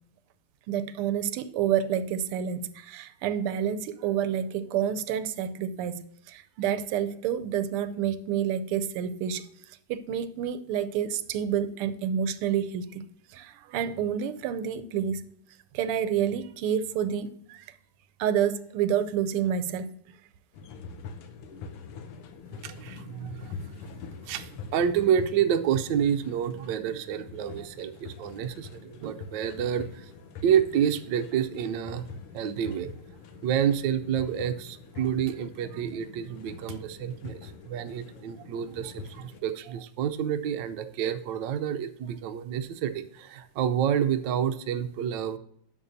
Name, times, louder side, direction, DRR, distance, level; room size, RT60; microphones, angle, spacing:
voice 1, 0.7-9.5 9.9-13.0 13.3-15.2 15.7-17.6 18.2-20.0, right 9 dB, 85° right, 1.5 m, -29 dB
sound 1, 20.5-39.4, left 5 dB, 85° left, 1.8 m, -44 dB
voice 2, 22.5-23.9 24.2-30.1 30.4-32.0 32.3-32.9 33.4-45.4, right 9 dB, 70° right, 1.2 m, -29 dB
11.0 x 6.8 x 2.6 m
omnidirectional pair, 2.4 m